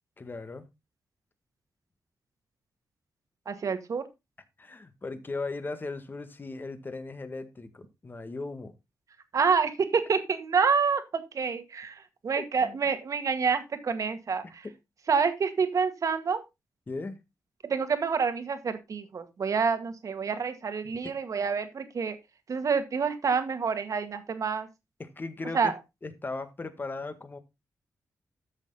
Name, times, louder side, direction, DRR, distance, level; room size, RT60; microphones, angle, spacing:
voice 1, 0.2-0.7 4.6-8.7 12.4-12.8 16.9-17.2 21.0-21.1 25.0-25.7 26.0-27.4, left 3 dB, 30° left, 1.8 m, -37 dB
voice 2, 3.5-4.0 9.3-14.7 15.1-16.4 17.6-22.2 22.5-24.7 25.5-25.7, right 5 dB, 55° right, 1.9 m, -28 dB
13.5 x 6.5 x 4.0 m
cardioid pair, 90°, 7 cm